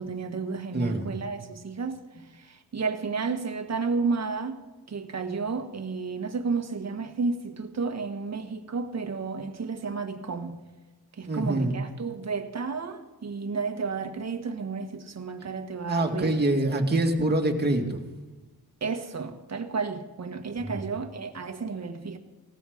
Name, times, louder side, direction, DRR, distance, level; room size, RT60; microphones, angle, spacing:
voice 1, 0.0-2.0 2.3-4.6 4.9-10.6 11.1-16.3 18.8-22.2, right 4 dB, 40° right, 1.6 m, -32 dB
voice 2, 0.7-1.1 11.3-11.8 15.9-18.0 20.7-20.8, right 2 dB, 25° right, 2.3 m, -25 dB
19.0 x 14.5 x 5.1 m
wide cardioid pair, 120°, 40 cm